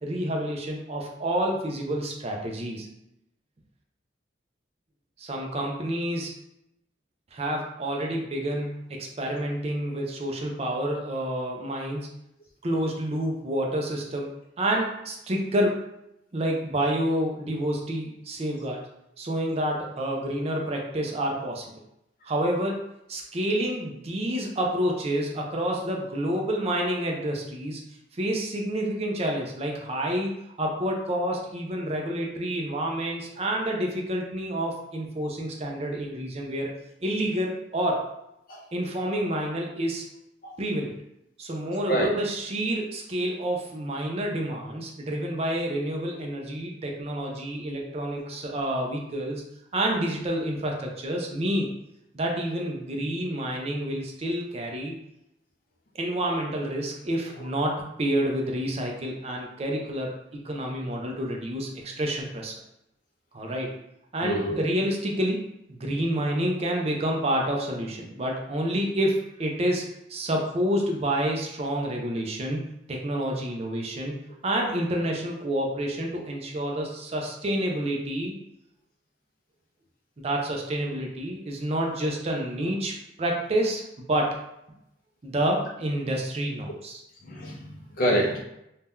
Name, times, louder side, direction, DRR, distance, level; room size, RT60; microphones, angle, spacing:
voice 1, 0.0-2.9 5.2-6.3 7.3-12.1 12.6-14.3 14.6-15.8 16.3-18.8 19.2-21.7 22.2-22.8 23.1-27.8 28.1-30.3 30.6-36.7 37.0-38.0 38.7-40.1 40.6-40.9 41.4-49.4 49.7-51.7 52.1-54.9 55.9-60.1 60.4-62.5 63.3-63.7 64.1-65.4 65.7-69.8 70.1-78.3 80.2-84.4 85.2-87.0, right 1 dB, 35° right, 1 dB, 0.5 m, -28 dB
voice 2, 64.2-64.6 87.3-88.4, right 1 dB, 50° left, -1 dB, 0.5 m, -26 dB
2.7 x 2.2 x 3.5 m, 0.82 s
head